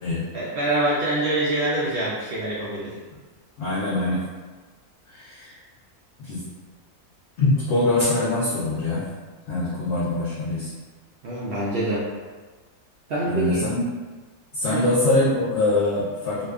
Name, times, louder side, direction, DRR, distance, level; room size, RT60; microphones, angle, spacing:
voice 1, 0.3-3.0 11.2-12.1 13.1-13.6 14.7-14.8, right 1 dB, 70° right, -8 dB, 0.5 m, -25 dB
voice 2, 3.6-4.2 5.1-5.6 6.2-6.4 7.4-9.1 9.5-10.7 13.3-13.8 14.5-16.5, left 2 dB, 65° left, -7 dB, 0.7 m, -23 dB
2.6 x 2.2 x 2.3 m, 1.3 s
omnidirectional pair, 1.5 m